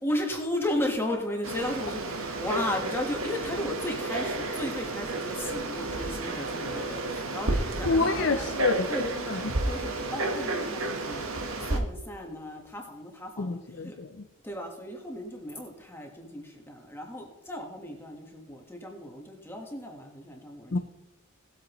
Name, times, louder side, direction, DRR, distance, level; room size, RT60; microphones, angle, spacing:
voice 1, 0.0-8.5 8.9-13.9 14.4-20.8, left 1 dB, 10° left, 1 dB, 1.4 m, -35 dB
Frog, 1.4-11.8, right 2 dB, 75° right, 1.3 m, -32 dB
voice 2, 7.9-9.4 13.4-14.3 20.7-20.8, left 3 dB, 55° left, 5 dB, 0.6 m, -28 dB
18.5 x 8.1 x 3.1 m, 0.98 s
head